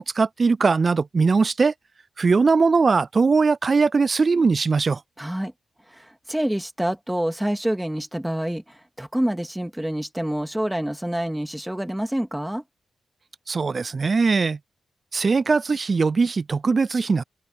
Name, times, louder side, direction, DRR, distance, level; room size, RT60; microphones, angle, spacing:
voice 1, 0.0-1.7 2.2-5.0 13.5-14.6 15.1-17.2, right 4 dB, 40° right, 0.3 m, -20 dB
voice 2, 5.2-5.5 5.9-12.6, right 1 dB, 5° right, 2.3 m, -27 dB
open air
cardioid pair, 85°, 0 cm